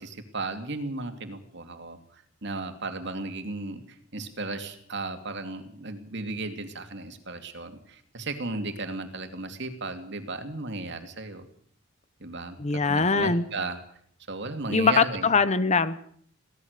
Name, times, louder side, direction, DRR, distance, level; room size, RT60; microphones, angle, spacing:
voice 1, 0.0-11.5 12.2-13.8 14.3-15.3, right 3 dB, 55° right, 7 dB, 2.7 m, -35 dB
voice 2, 12.6-13.4 14.7-16.1, left 4 dB, 35° left, 14 dB, 0.9 m, -22 dB
23.0 x 17.0 x 6.7 m, 0.62 s
head